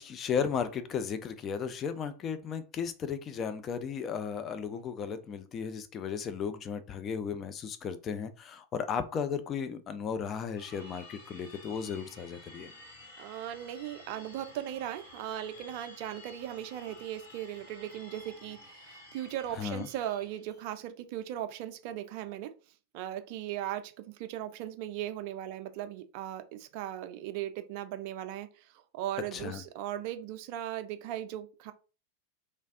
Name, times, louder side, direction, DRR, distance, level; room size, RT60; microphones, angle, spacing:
voice 1, 0.0-12.7 19.6-19.9 29.3-29.6, left 6 dB, 30° left, 0.3 m, -35 dB
sound 1, 10.6-20.6, left 1 dB, 65° left, 1.0 m, -52 dB
voice 2, 13.2-22.5 22.9-31.7, right 12 dB, 45° right, 0.4 m, -38 dB
3.1 x 2.3 x 2.6 m
figure-of-eight pair, 90°, 0 cm